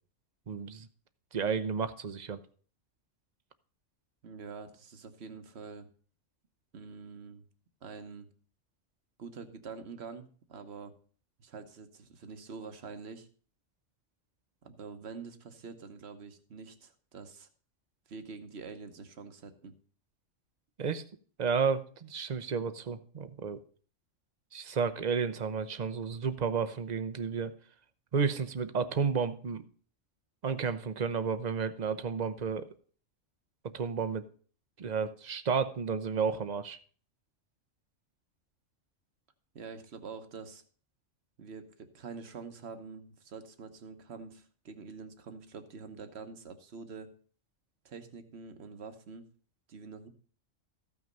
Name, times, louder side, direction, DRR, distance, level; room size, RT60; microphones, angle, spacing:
voice 1, 0.5-0.9 1.3-2.4 20.8-21.0 21.4-23.6 24.5-27.5 28.1-29.6 30.4-32.7 33.6-34.2 34.8-36.8, right 6 dB, 40° right, 10 dB, 0.8 m, -32 dB
voice 2, 4.2-5.9 6.7-7.4 7.8-8.3 9.2-10.9 11.4-13.3 14.6-17.5 18.1-19.7 39.5-40.6 41.4-47.1 47.8-49.3 49.7-50.1, right 5 dB, 55° right, 8 dB, 1.4 m, -46 dB
14.5 x 6.1 x 5.3 m, 0.43 s
omnidirectional pair, 1.3 m